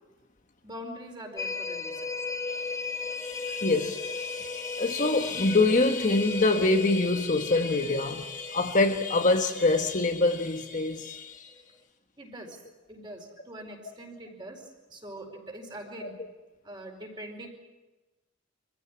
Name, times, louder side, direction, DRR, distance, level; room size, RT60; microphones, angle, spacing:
voice 1, 0.6-2.1 12.2-12.6 12.9-16.1 16.6-17.5, right 1 dB, 25° right, 4.8 m, -43 dB
sound 1, 1.4-11.1 11.5-11.6, left 4 dB, 15° left, 0.9 m, -37 dB
voice 2, 3.1-11.5 16.0-16.1, left 2 dB, 40° left, 1.2 m, -25 dB
25.5 x 15.5 x 9.8 m
head